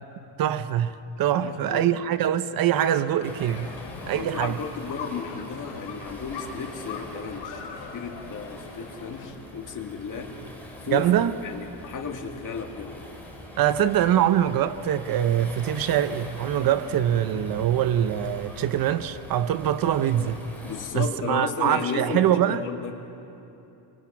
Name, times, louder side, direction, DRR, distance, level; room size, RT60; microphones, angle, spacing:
voice 1, 0.4-3.7 4.1-4.6 10.9-11.3 13.6-20.4 20.9-22.6, right 10 dB, 55° right, 0.8 m, -23 dB
voice 2, 1.3-2.0 4.1-7.6 7.9-10.4 10.8-11.1 11.4-13.0 20.6-23.0, left 6 dB, 45° left, 2.4 m, -34 dB
sound 1, 2.9-9.3, left 5 dB, 75° left, 4.5 m, -41 dB
Waves surf, 3.2-20.9, left 1 dB, 5° left, 4.7 m, -43 dB
28.5 x 25.0 x 5.9 m
cardioid pair, 145°, 43 cm